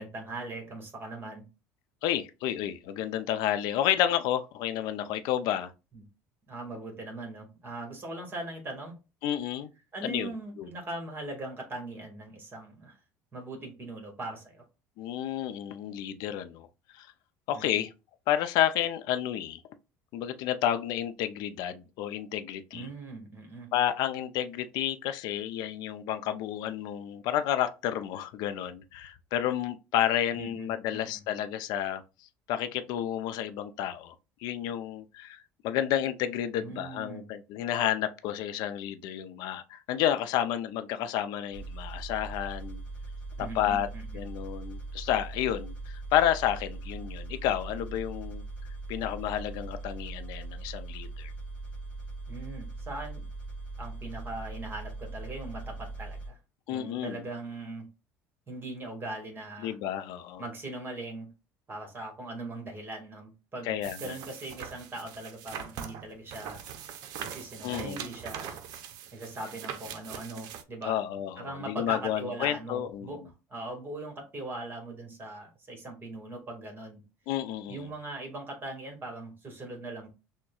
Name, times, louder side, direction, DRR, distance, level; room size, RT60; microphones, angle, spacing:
voice 1, 0.0-1.4 5.9-6.0 6.5-8.9 9.9-13.0 13.3-14.6 17.5-17.7 22.7-23.7 30.3-31.2 36.6-37.3 43.4-44.2 52.3-53.3 53.8-56.4 56.7-57.8 58.5-59.7 60.4-61.3 61.7-66.6 67.2-68.6 69.1-71.0 71.4-73.2 73.5-77.0 77.7-80.1, right 2 dB, 30° right, 1.6 m, -40 dB
voice 2, 2.0-5.7 9.2-9.7 10.0-10.7 15.0-16.7 16.9-17.1 17.5-17.9 18.3-19.6 20.1-22.9 23.7-32.0 32.5-34.1 34.4-42.8 43.4-43.9 44.1-48.4 48.9-51.3 56.7-57.2 59.6-60.4 63.6-64.2 67.6-68.0 70.8-73.1 77.3-77.9, left 11 dB, 70° left, 0.5 m, -30 dB
sound 1, 41.5-56.3, right 2 dB, 20° left, 1.5 m, -40 dB
sound 2, 63.8-70.6, right 8 dB, 65° right, 0.6 m, -42 dB
6.0 x 2.2 x 2.3 m
supercardioid pair, 80°, 7 cm